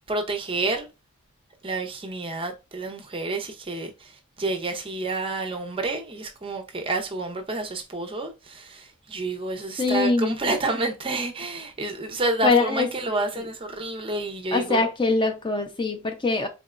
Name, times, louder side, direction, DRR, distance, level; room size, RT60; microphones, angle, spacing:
voice 1, 0.1-0.9 1.6-14.9, right 2 dB, 25° right, 0.5 m, -29 dB
voice 2, 9.8-10.3 12.4-13.4 14.5-16.5, left 3 dB, 20° left, 0.5 m, -23 dB
3.9 x 3.2 x 2.4 m
head